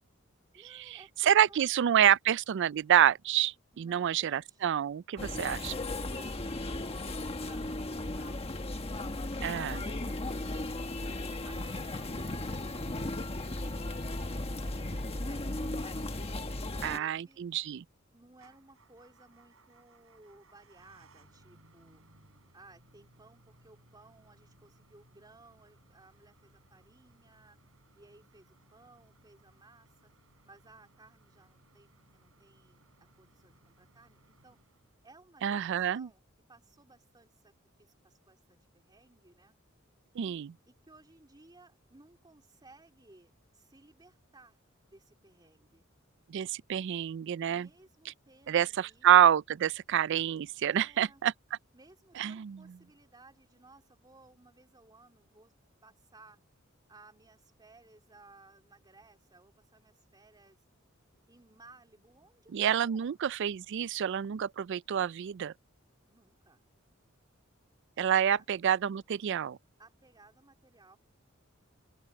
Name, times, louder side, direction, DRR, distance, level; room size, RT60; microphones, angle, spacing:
voice 1, 0.5-1.7 3.7-4.7 6.0-9.1 10.9-13.9 14.3-17.4 18.1-22.0 22.5-27.6 28.0-30.1 30.4-32.8 33.2-34.6 35.0-36.2 36.5-37.5 37.8-39.6 40.7-44.6 44.9-45.8 47.5-49.1 50.7-51.2 51.7-55.5 55.8-56.4 56.9-60.7 61.3-63.2 66.1-66.6 68.3-68.4 69.8-71.0, right 2 dB, 20° right, 3.2 m, -60 dB
voice 2, 1.2-5.7 9.4-9.8 16.8-17.8 35.4-36.1 40.2-40.5 46.3-47.7 48.5-51.3 52.2-52.6 62.5-65.5 68.0-69.6, right 10 dB, 60° right, 0.4 m, -27 dB
sound 1, 5.2-17.0, left 2 dB, 30° left, 1.4 m, -36 dB
Motor vehicle (road) / Engine starting / Idling, 18.3-35.3, right 2 dB, 85° right, 7.7 m, -64 dB
open air
head